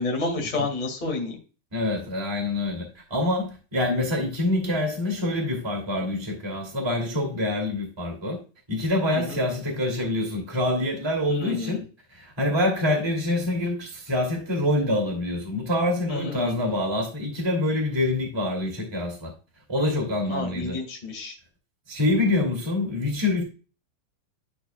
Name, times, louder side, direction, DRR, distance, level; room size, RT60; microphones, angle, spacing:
voice 1, 0.0-1.3 9.1-9.4 11.3-11.8 16.1-16.6 20.3-21.3, left 3 dB, 20° left, 1.2 m, -30 dB
voice 2, 1.7-8.4 8.7-11.8 12.1-19.3 19.7-20.8 21.9-23.4, left 1 dB, 10° right, 1.6 m, -26 dB
11.5 x 4.7 x 2.3 m
omnidirectional pair, 3.8 m